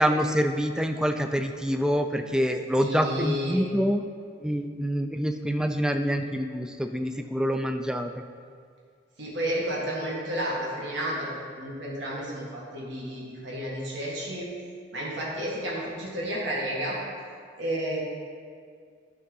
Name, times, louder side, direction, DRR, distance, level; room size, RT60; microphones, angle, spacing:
voice 1, 0.0-4.0 4.4-8.1, equal, 5° right, 6 dB, 0.3 m, -26 dB
voice 2, 2.8-3.7 9.2-11.3 11.6-14.5 14.9-17.0 17.6-18.0, equal, 70° right, -5 dB, 1.8 m, -31 dB
11.0 x 3.7 x 5.4 m, 2.1 s
head